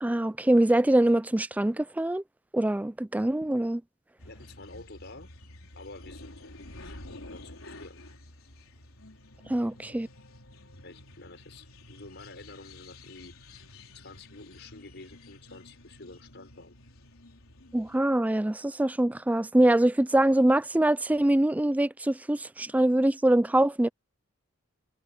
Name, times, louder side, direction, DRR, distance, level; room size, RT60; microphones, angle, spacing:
voice 1, 0.0-2.2 2.5-3.8 9.5-10.1 17.7-23.9, right 1 dB, 5° right, 0.4 m, -24 dB
sound 1, 4.2-18.0, left 2 dB, 85° left, 3.8 m, -50 dB
voice 2, 4.2-5.3 5.8-8.0 10.8-13.6 13.9-16.8, left 2 dB, 55° left, 6.0 m, -49 dB
head